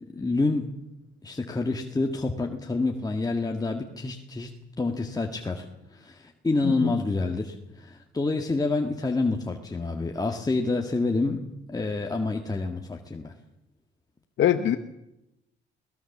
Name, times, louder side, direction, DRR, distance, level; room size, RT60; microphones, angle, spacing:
voice 1, 0.1-0.7 1.2-5.7 5.9-13.3, left 3 dB, 20° left, 3 dB, 1.9 m, -28 dB
voice 2, 14.4-14.8, left 11 dB, 70° left, 7 dB, 1.2 m, -23 dB
22.0 x 18.5 x 7.3 m, 0.88 s
cardioid pair, 90°, 20 cm